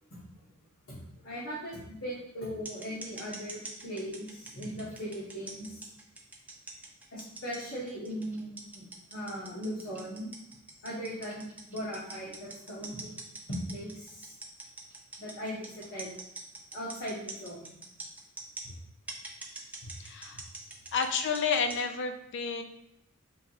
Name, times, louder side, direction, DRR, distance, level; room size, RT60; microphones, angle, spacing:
voice 1, 0.9-5.9 7.1-8.8 9.1-10.3 10.8-13.2 13.5-14.4 15.2-16.1 16.7-17.6 18.6-18.7, equal, 75° left, -8 dB, 1.3 m, -39 dB
sound 1, 2.7-18.6 19.1-21.8, right 3 dB, 5° right, 0.4 m, -43 dB
voice 2, 20.0-20.4 20.9-22.6, left 5 dB, 55° left, 7 dB, 0.4 m, -30 dB
4.5 x 2.8 x 2.8 m, 0.80 s
head